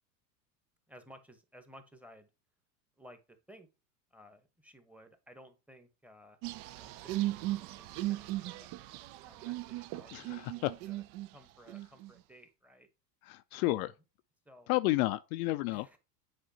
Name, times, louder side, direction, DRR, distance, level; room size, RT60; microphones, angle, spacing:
voice 1, 0.9-2.3 3.0-3.7 4.1-6.4 6.7-8.7 9.2-11.0 11.3-12.9 13.5-13.8 14.4-14.7 15.7-16.0, equal, 5° right, 1.1 m, -57 dB
sound 1, 6.4-11.3 11.7-12.1, right 16 dB, 45° right, 0.5 m, -37 dB
voice 2, 10.1-10.7 13.2-13.9 14.7-15.9, left 18 dB, 60° left, 0.5 m, -31 dB
8.1 x 5.0 x 2.8 m
hypercardioid pair, 95°, 49 cm